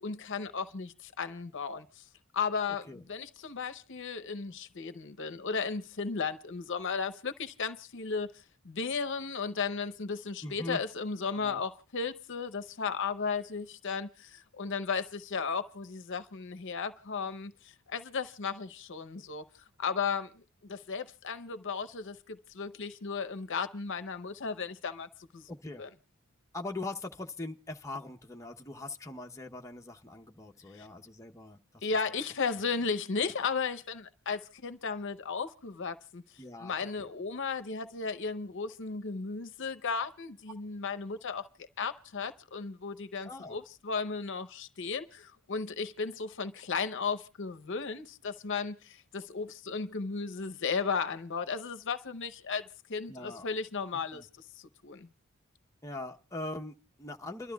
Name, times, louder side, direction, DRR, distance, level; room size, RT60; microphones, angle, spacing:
voice 1, 0.0-2.0 2.3-8.3 8.6-17.5 17.9-19.4 19.8-20.4 20.7-25.1 25.3-25.5 25.8-25.9 30.8-30.9 31.8-36.2 36.6-54.3 54.6-55.1, left 5 dB, 60° left, 0.7 m, -35 dB
voice 2, 10.4-10.8 11.4-11.6 25.5-25.8 26.5-31.8 36.4-37.1 43.2-43.6 53.1-53.5 54.1-54.3 55.8-57.5, left 2 dB, 15° left, 0.8 m, -41 dB
29.5 x 12.5 x 2.3 m
head